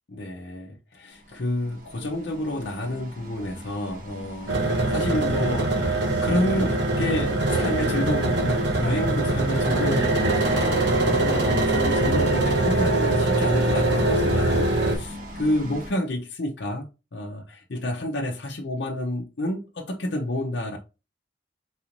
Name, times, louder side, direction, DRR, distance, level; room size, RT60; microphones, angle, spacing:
voice 1, 0.1-4.6 4.9-5.9 6.2-20.8, left 1 dB, 70° left, 0.7 m, -29 dB
sound 1, 1.1-15.9, equal, 50° right, 1.2 m, -39 dB
sound 2, 4.5-15.0, right 2 dB, 75° right, 1.1 m, -22 dB
4.0 x 2.6 x 2.9 m
head